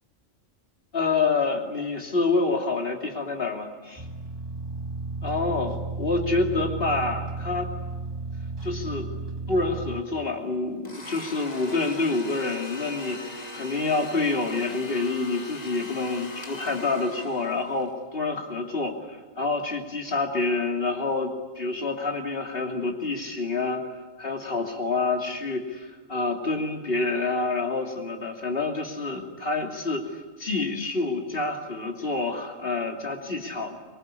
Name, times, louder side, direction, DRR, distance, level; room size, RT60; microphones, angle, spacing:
voice 1, 0.9-4.0 5.2-7.7 8.6-9.1 9.5-23.8 24.2-33.8, left 3 dB, 50° left, 2 dB, 3.1 m, -27 dB
tube radio shortwave longwave noise low hum, 4.0-10.0, right 3 dB, 20° right, 2.1 m, -34 dB
Domestic sounds home sounds, 10.8-17.9, left 2 dB, 35° left, 2.2 m, -40 dB
25.5 x 23.0 x 9.8 m, 1.2 s
omnidirectional pair, 1.3 m